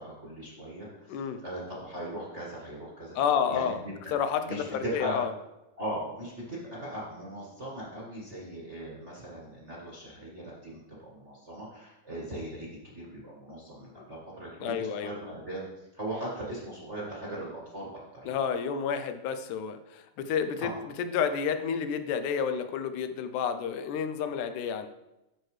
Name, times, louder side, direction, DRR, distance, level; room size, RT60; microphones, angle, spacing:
voice 1, 0.0-3.1 3.5-3.9 4.4-5.2 5.8-18.4 20.6-20.7, right 1 dB, 35° right, -5 dB, 1.3 m, -39 dB
voice 2, 1.1-1.4 3.2-3.8 4.1-5.3 13.9-14.0 14.6-15.2 18.3-24.9, left 7 dB, 90° left, 9 dB, 2.2 m, -30 dB
13.0 x 4.6 x 3.2 m, 0.94 s
omnidirectional pair, 3.5 m